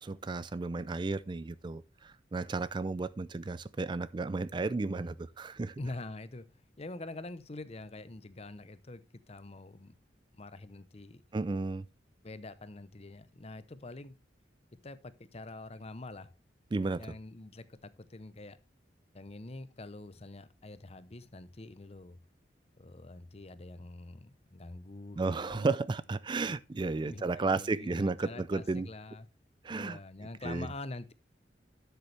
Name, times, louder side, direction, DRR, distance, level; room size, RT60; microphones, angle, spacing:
voice 1, 0.0-5.8 11.3-11.9 16.7-17.1 25.2-28.9 29.6-30.0 30.4-30.7, right 3 dB, 25° right, 0.4 m, -33 dB
voice 2, 5.8-6.5 6.8-9.9 10.3-11.2 12.2-14.2 14.8-16.3 17.0-18.6 19.1-22.2 22.8-25.7 27.0-29.3 29.7-31.1, left 2 dB, 35° left, 0.8 m, -45 dB
12.5 x 6.8 x 3.3 m
head